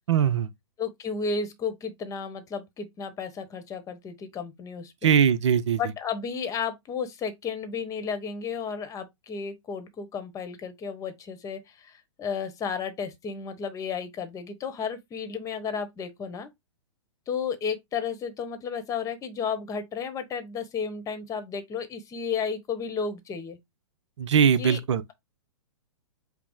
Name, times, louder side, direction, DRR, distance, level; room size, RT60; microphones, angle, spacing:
voice 1, 0.1-0.5 5.0-5.8 24.2-25.0, right 7 dB, 65° right, 0.6 m, -21 dB
voice 2, 0.8-5.1 5.8-16.5 17.3-23.6 24.6-24.8, left 6 dB, 20° left, 1.0 m, -33 dB
5.2 x 2.1 x 4.6 m
hypercardioid pair, 115°, 16 cm